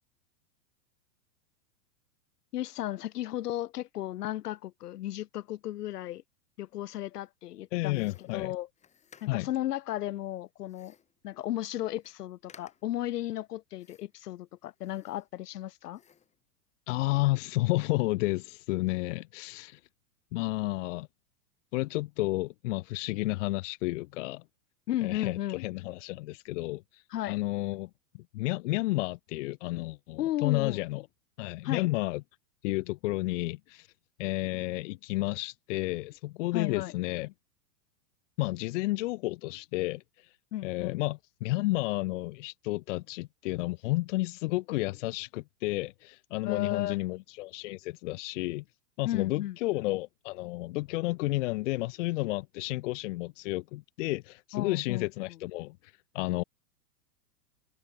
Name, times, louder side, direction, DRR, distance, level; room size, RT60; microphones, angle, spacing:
voice 1, 2.5-6.2 6.6-8.7 9.2-10.9 11.2-16.0 24.9-25.6 27.1-27.4 30.2-30.8 31.6-31.9 36.5-36.9 40.5-41.0 46.4-47.0 49.0-49.6 54.5-55.1, left 14 dB, 75° left, 1.6 m, -34 dB
voice 2, 7.7-8.5 9.3-9.5 16.9-19.8 20.3-21.1 21.7-24.4 25.0-27.9 28.3-31.0 31.4-32.2 32.6-33.9 34.2-37.3 38.4-40.3 40.6-48.6 49.0-55.8 56.1-56.4, left 20 dB, 50° left, 0.7 m, -31 dB
sound 1, 7.9-9.6 10.7-11.2 11.6-11.7 11.9-12.2 12.5-13.0 13.8-14.3 14.7-15.6 15.9-16.4, left 7 dB, 15° left, 1.7 m, -59 dB
open air
hypercardioid pair, 140°, 47 cm